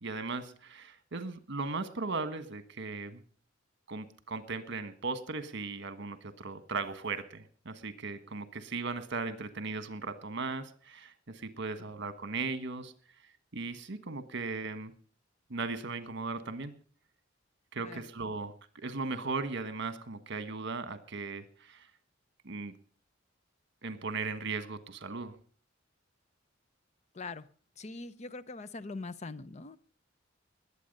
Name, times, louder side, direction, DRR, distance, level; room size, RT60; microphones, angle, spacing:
voice 1, 0.0-3.2 3.9-12.9 13.5-14.9 15.5-16.7 17.7-21.9 22.4-22.7 23.8-25.3, right 3 dB, 65° right, 11 dB, 1.4 m, -37 dB
voice 2, 27.1-27.5 27.8-29.8, left 3 dB, 35° left, 15 dB, 0.6 m, -42 dB
21.0 x 8.5 x 5.4 m, 0.43 s
head